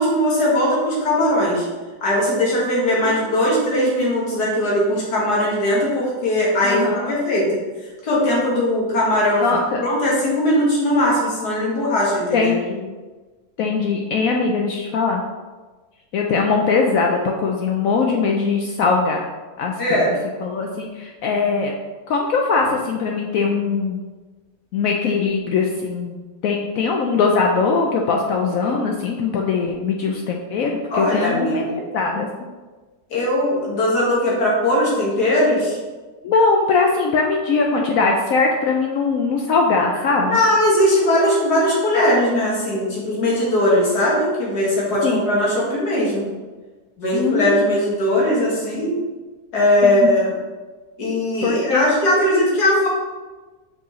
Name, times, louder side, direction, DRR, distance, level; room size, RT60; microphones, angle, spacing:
voice 1, 0.0-1.7 2.0-6.8 7.1-7.5 8.0-9.4 9.8-12.5 19.8-20.1 30.9-31.8 33.1-35.8 40.2-46.3 47.0-49.0 49.5-50.3 51.0-52.9, left 1 dB, 85° left, -5 dB, 2.2 m, -19 dB
voice 2, 3.0-3.5 6.6-7.1 9.4-9.8 12.3-12.9 13.6-15.2 16.1-19.3 19.6-20.1 20.4-21.7 22.1-24.0 24.7-32.3 36.2-40.4 45.0-45.2 47.1-47.7 49.8-50.1 51.4-51.9, left 4 dB, 70° left, 1 dB, 0.9 m, -21 dB
6.6 x 4.6 x 3.1 m, 1.3 s
omnidirectional pair, 1.7 m